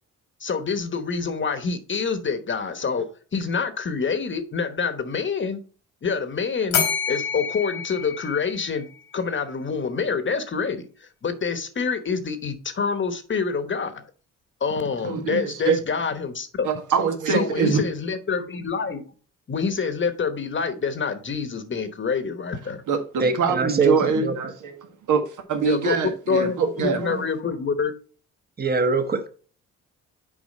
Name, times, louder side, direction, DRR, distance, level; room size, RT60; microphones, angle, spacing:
voice 1, 0.4-5.6 6.0-6.8 7.1-14.0 14.6-16.7 17.3-19.0 19.5-22.8 25.6-26.0 26.3-27.9, left 5 dB, 35° left, 1.2 m, -26 dB
Bell, 6.7-9.0, left 7 dB, 85° left, 2.0 m, -28 dB
voice 2, 15.0-15.8 16.6-17.8 22.9-27.2, right 6 dB, 70° right, 1.5 m, -24 dB
voice 3, 23.2-24.3 28.6-29.3, right 4 dB, 30° right, 1.2 m, -23 dB
7.4 x 4.6 x 4.2 m
cardioid pair, 80°, 32 cm